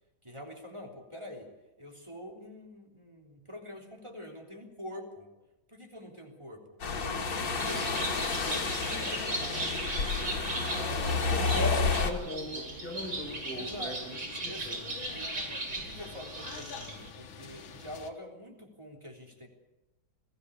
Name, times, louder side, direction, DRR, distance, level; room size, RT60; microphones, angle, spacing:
voice 1, 0.2-1.5 1.8-5.3 5.7-6.8 7.0-10.3 10.7-12.1 13.5-14.0 14.4-19.5, left 1 dB, 15° right, 1 dB, 3.5 m, -46 dB
sound 1, 6.8-12.1, left 4 dB, 65° left, 2.6 m, -30 dB
Bird, 7.4-17.1, right 2 dB, 55° right, 3.6 m, -38 dB
voice 2, 11.3-14.8, left 1 dB, 5° left, -5 dB, 5.6 m, -38 dB
sound 2, 12.9-18.1, left 5 dB, 85° left, 2.1 m, -47 dB
22.0 x 15.5 x 8.4 m, 1.0 s
omnidirectional pair, 2.2 m